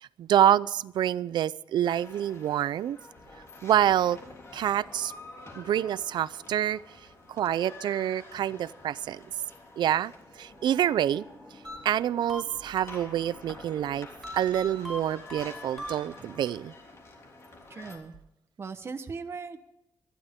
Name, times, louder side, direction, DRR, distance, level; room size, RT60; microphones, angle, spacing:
voice 1, 0.0-3.0 3.6-4.2 4.5-5.1 5.6-6.8 7.3-9.2 9.8-11.2 11.8-14.1 14.3-16.7, right 11 dB, 85° right, 0.5 m, -27 dB
sound 1, 1.8-18.0, left 2 dB, 40° left, 3.3 m, -48 dB
sound 2, 11.6-13.5 14.2-16.5, equal, 5° left, 5.1 m, -41 dB
voice 2, 17.7-18.1 18.6-19.6, right 4 dB, 35° right, 1.0 m, -38 dB
25.0 x 11.5 x 3.6 m
wide cardioid pair, 150°, 8 cm